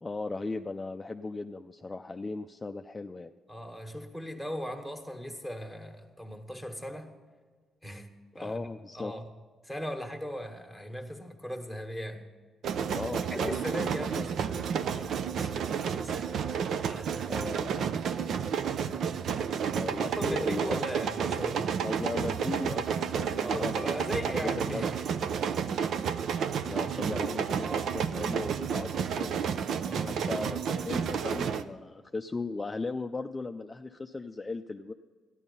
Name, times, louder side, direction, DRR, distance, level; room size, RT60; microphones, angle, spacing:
voice 1, 0.0-3.3 8.4-9.1 12.9-13.5 14.1-14.3 17.3-18.0 19.7-20.8 21.8-24.8 26.6-34.9, left 3 dB, 20° left, 0.5 m, -37 dB
voice 2, 3.5-7.1 7.8-8.1 8.3-8.7 8.9-9.2 9.6-12.2 13.3-15.1 15.4-15.6 16.0-16.5 16.9-17.4 19.8-21.7 23.4-25.0 29.8-30.4, equal, 5° right, 1.7 m, -39 dB
sound 1, 12.6-31.6, right 7 dB, 70° right, 0.6 m, -31 dB
13.5 x 11.0 x 5.5 m
cardioid pair, 90°, 0 cm